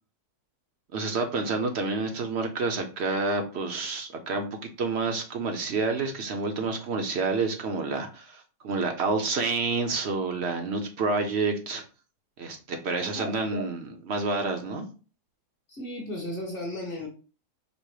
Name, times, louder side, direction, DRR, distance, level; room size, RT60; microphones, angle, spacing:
voice 1, 0.9-11.8 12.4-14.9, right 3 dB, 55° right, 5 dB, 0.7 m, -29 dB
voice 2, 13.0-13.7 15.7-17.1, left 1 dB, 40° left, 0 dB, 1.0 m, -35 dB
5.2 x 2.0 x 4.7 m, 0.35 s
omnidirectional pair, 1.7 m